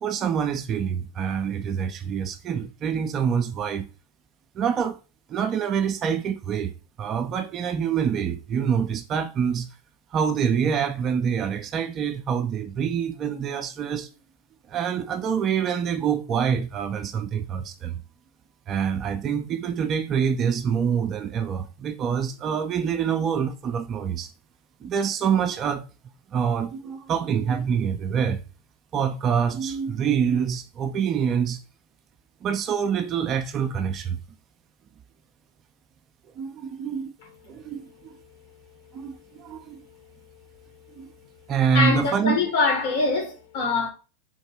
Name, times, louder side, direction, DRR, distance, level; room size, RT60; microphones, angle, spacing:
voice 1, 0.0-3.9 4.6-5.0 5.3-9.7 10.1-14.1 14.7-18.0 18.7-24.3 24.8-25.8 26.3-28.4 28.9-31.6 32.4-34.2 36.4-37.1 37.5-38.1 38.9-39.8 41.0-41.1 41.5-42.4, right 7 dB, 30° right, 0.3 m, -26 dB
voice 2, 41.7-43.9, left 4 dB, 50° left, 1.2 m, -23 dB
3.7 x 2.1 x 3.1 m
figure-of-eight pair, 90°, 0 cm